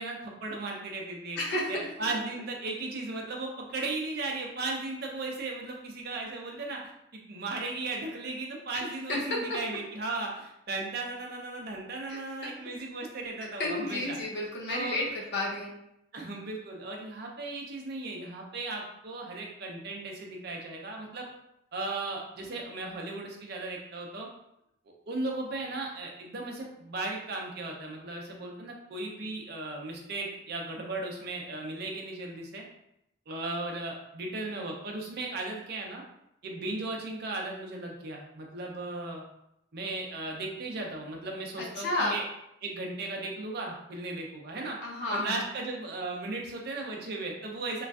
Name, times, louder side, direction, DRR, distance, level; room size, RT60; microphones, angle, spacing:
voice 1, 0.0-1.4 1.7-14.2 14.7-15.0 16.1-21.2 21.7-24.3 25.1-32.6 33.3-36.0 36.4-39.2 39.7-42.2 42.6-44.8 45.1-47.9, right 2 dB, 55° right, 0 dB, 0.6 m, -36 dB
voice 2, 1.4-1.9 8.7-8.8 9.1-9.6 12.1-12.5 13.6-15.7 41.6-42.2 44.8-45.4, left 2 dB, 60° left, -3 dB, 0.7 m, -32 dB
3.0 x 2.5 x 2.3 m, 0.80 s
head